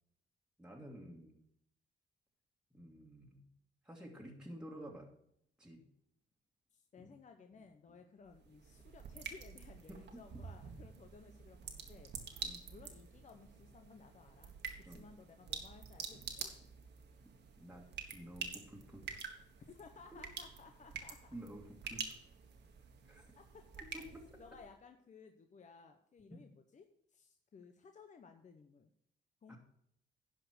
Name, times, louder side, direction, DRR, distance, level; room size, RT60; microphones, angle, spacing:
voice 1, 0.6-1.4 2.7-3.4 3.8-5.1 5.6-5.9 7.0-7.1 7.9-8.0 9.9-10.4 12.4-12.6 14.9-15.1 17.5-19.2 21.3-22.2 23.0-23.2 23.9-24.2 26.3-26.4 29.5-29.6, right 1 dB, 5° right, -2 dB, 1.9 m, -51 dB
voice 2, 6.7-12.1 12.7-14.5 14.9-16.5 19.7-21.4 23.3-23.6 24.4-28.9 29.4-29.6, left 5 dB, 40° left, 6 dB, 0.9 m, -58 dB
sound 1, 8.3-24.7, right 6 dB, 60° right, 1.6 m, -48 dB
11.5 x 5.0 x 6.3 m, 0.72 s
cardioid pair, 90°, 20 cm